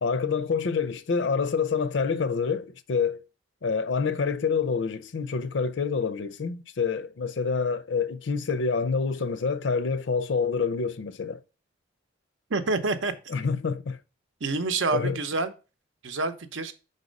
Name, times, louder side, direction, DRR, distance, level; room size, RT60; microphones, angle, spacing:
voice 1, 0.0-3.2 3.6-11.4 13.3-14.0 14.9-15.2, left 5 dB, 65° left, 0.5 m, -27 dB
voice 2, 12.5-13.1 14.4-15.5 16.0-16.7, right 3 dB, 75° right, 0.8 m, -27 dB
5.3 x 4.1 x 5.1 m
head